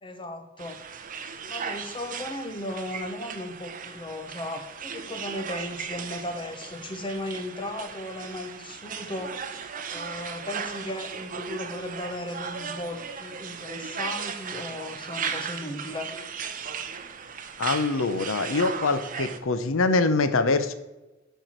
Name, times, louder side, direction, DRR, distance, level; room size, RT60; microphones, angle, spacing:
voice 1, 0.0-0.8 1.5-9.3 9.9-16.1, left 1 dB, 25° left, 6 dB, 1.0 m, -36 dB
sound 1, 0.6-19.4, right 6 dB, 40° right, 0.7 m, -37 dB
voice 2, 17.6-20.7, left 3 dB, 90° left, 11 dB, 0.7 m, -24 dB
11.5 x 4.6 x 4.5 m, 1.1 s
head